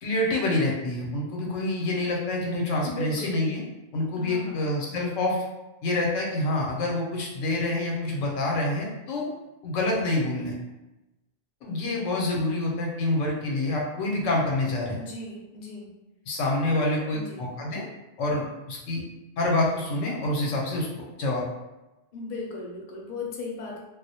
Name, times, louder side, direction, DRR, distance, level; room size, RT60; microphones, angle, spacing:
voice 1, 0.0-3.6 3.9-5.4 5.8-9.3 9.6-10.6 11.6-15.0 16.3-17.8 18.2-19.0 19.4-21.4, left 2 dB, 85° left, -1 dB, 1.0 m, -27 dB
voice 2, 2.8-3.5 4.2-4.7 15.0-15.9 16.8-17.5 22.1-23.8, left 3 dB, 60° left, -2 dB, 0.6 m, -37 dB
2.3 x 2.0 x 2.7 m, 1.0 s
omnidirectional pair, 1.3 m